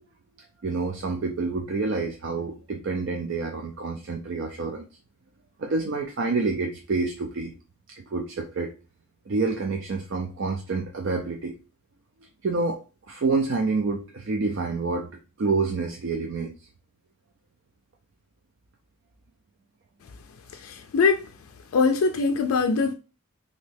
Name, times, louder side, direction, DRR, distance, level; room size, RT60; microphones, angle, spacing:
voice 1, 0.6-4.9 5.6-7.5 7.9-8.7 9.3-11.5 12.4-12.8 13.1-15.1 15.4-16.6, right 3 dB, 60° right, 0.4 m, -28 dB
voice 2, 20.6-21.2 21.7-22.9, left 4 dB, 75° left, 0.3 m, -22 dB
3.0 x 2.7 x 3.2 m
head